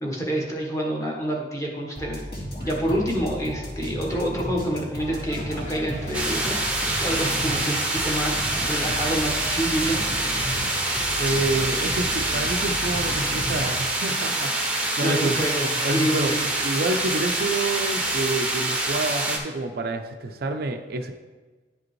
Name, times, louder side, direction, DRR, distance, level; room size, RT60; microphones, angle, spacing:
voice 1, 0.0-2.2 2.7-6.6 6.9-10.1 15.0-16.5, equal, 15° left, -1 dB, 1.1 m, -27 dB
sound 1, 1.9-14.2, equal, 55° left, 2.2 m, -34 dB
Speech, 4.9-11.7, equal, 40° left, 1.7 m, -43 dB
sound 2, 6.1-19.4, right 2 dB, 5° right, 0.7 m, -26 dB
voice 2, 11.2-15.4 15.8-16.4 16.6-21.1, right 2 dB, 55° right, 6 dB, 0.4 m, -28 dB
10.5 x 5.0 x 3.1 m, 1.3 s
head